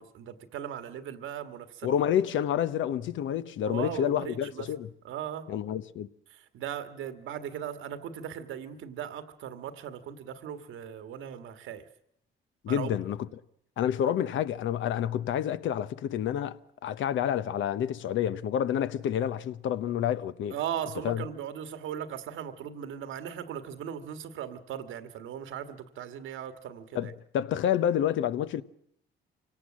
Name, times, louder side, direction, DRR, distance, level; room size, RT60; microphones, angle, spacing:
voice 1, 0.0-1.9 3.7-4.7 5.0-5.5 6.3-11.8 12.7-13.0 20.5-27.1, right 9 dB, 85° right, 1.7 m, -38 dB
voice 2, 1.8-4.9 5.5-6.1 12.6-13.2 13.8-20.6 21.0-21.2 26.9-28.6, left 10 dB, 75° left, 0.9 m, -29 dB
25.0 x 18.0 x 7.5 m
cardioid pair, 90°, 20 cm